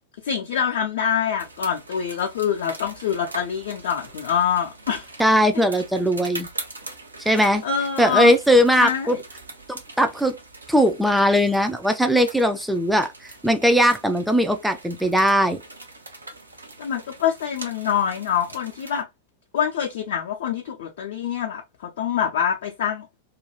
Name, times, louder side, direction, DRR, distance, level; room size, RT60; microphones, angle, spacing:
voice 1, 0.2-5.1 5.5-5.6 7.3-8.3 8.8-9.2 16.8-19.1 19.5-23.1, left 8 dB, 55° left, 0.5 m, -25 dB
sound 1, 1.4-19.0, right 2 dB, 80° right, 0.6 m, -42 dB
voice 2, 5.2-6.5 7.2-7.6 8.0-9.2 9.7-10.3 10.7-15.6, equal, ahead, 0.3 m, -19 dB
2.4 x 2.2 x 2.9 m
figure-of-eight pair, 90°, 0 cm